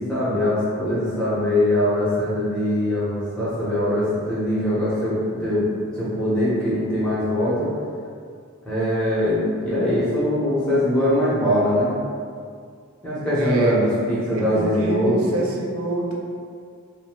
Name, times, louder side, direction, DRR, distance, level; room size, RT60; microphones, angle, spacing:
voice 1, 0.0-5.7 6.0-7.7 8.6-12.0 13.0-15.3, left 1 dB, 5° left, -12 dB, 0.9 m, -22 dB
voice 2, 13.4-13.8 14.3-16.1, right 2 dB, 90° right, -2 dB, 0.5 m, -26 dB
2.6 x 2.2 x 2.9 m, 2.2 s
head